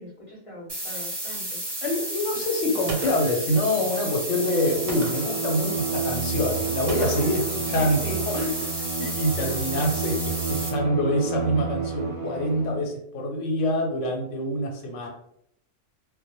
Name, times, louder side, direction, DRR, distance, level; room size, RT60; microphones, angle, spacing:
voice 1, 0.0-1.6 7.0-8.2, left 1 dB, 35° left, -5 dB, 0.6 m, -41 dB
sound 1, 0.7-10.7, right 1 dB, 25° right, 0.9 m, -32 dB
voice 2, 1.8-15.1, left 1 dB, 85° left, 1 dB, 0.9 m, -26 dB
Gunshot gunfire, 2.9-3.5 4.9-5.4 6.9-7.4, right 2 dB, 90° right, 0.9 m, -35 dB
Bowed string instrument, 4.3-12.9, right 5 dB, 65° right, 0.8 m, -31 dB
2.1 x 2.0 x 2.8 m, 0.71 s
omnidirectional pair, 1.2 m